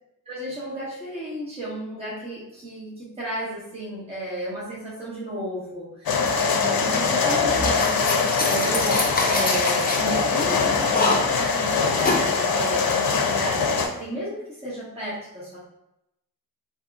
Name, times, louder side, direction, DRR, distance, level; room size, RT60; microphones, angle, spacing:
voice 1, 0.3-9.0 9.3-15.6, right 1 dB, 15° right, -8 dB, 1.0 m, -33 dB
sound 1, 6.1-13.9, left 5 dB, 80° left, 0.5 m, -23 dB
sound 2, 7.5-12.3, left 2 dB, 25° left, 0.6 m, -26 dB
2.8 x 2.8 x 2.4 m, 0.86 s
wide cardioid pair, 80°, 36 cm